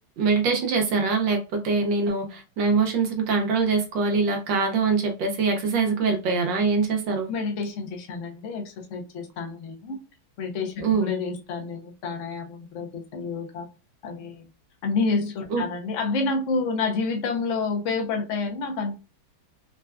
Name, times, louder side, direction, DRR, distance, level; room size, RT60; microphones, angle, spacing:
voice 1, 0.2-7.3 10.8-11.1 15.5-15.6, right 4 dB, 70° right, 1.3 m, -23 dB
voice 2, 7.3-10.0 10.4-13.7 14.0-14.5 14.8-18.9, left 4 dB, 85° left, 0.6 m, -29 dB
3.9 x 2.2 x 2.3 m
omnidirectional pair, 2.2 m